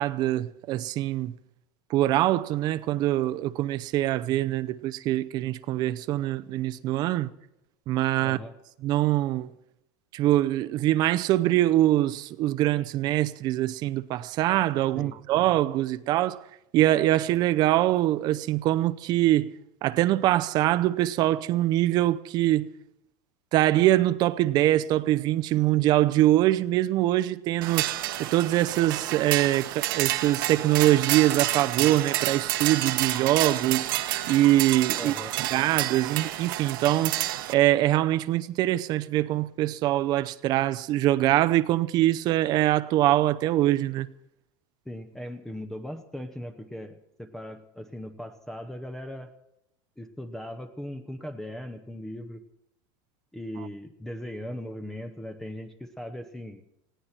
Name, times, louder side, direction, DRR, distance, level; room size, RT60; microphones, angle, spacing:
voice 1, 0.0-1.3 1.9-7.3 7.9-8.4 8.8-9.5 10.1-16.4 16.7-19.5 19.8-22.7 23.5-27.9 28.2-33.9 34.3-35.1 35.4-37.2 37.5-44.1, right 14 dB, 35° right, 0.7 m, -23 dB
voice 2, 8.2-8.5 15.0-15.2 35.0-35.3 44.9-49.3 50.0-52.4 53.3-56.6, left 1 dB, 5° left, 0.8 m, -38 dB
sound 1, 27.6-37.5, right 15 dB, 75° right, 1.3 m, -29 dB
19.5 x 16.5 x 4.4 m
supercardioid pair, 160°, 11 cm